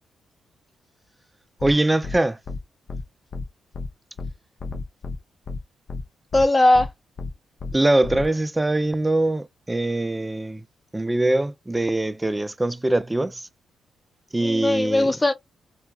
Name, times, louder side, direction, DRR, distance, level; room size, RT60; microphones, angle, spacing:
sound 1, 1.6-1.7 2.0-2.2 2.5-2.6 2.9-3.0 3.3-3.4 3.7-3.9 4.2-4.3 4.6-5.2 5.5-5.6 5.9-6.0 6.3-6.4 6.7-6.9 7.2-7.3 7.6-7.7 8.0-8.3, left 3 dB, 55° left, 0.6 m, -31 dB
voice 1, 1.6-2.4 7.7-10.6 10.9-13.4 14.3-15.1, right 2 dB, 15° right, 0.3 m, -22 dB
voice 2, 6.3-6.9 14.4-15.3, left 2 dB, 20° left, 0.7 m, -19 dB
2.7 x 2.1 x 2.2 m
supercardioid pair, 50°, 0 cm